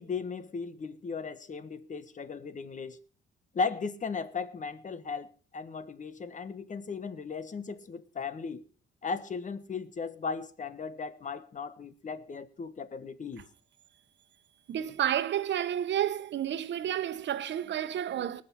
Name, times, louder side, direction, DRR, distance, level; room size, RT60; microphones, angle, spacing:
voice 1, 0.0-3.0 3.5-8.6 9.0-13.4, left 5 dB, 40° left, 1.3 m, -36 dB
voice 2, 14.7-18.4, right 10 dB, 65° right, 1.1 m, -30 dB
19.0 x 6.4 x 7.2 m
cardioid pair, 90°, 20 cm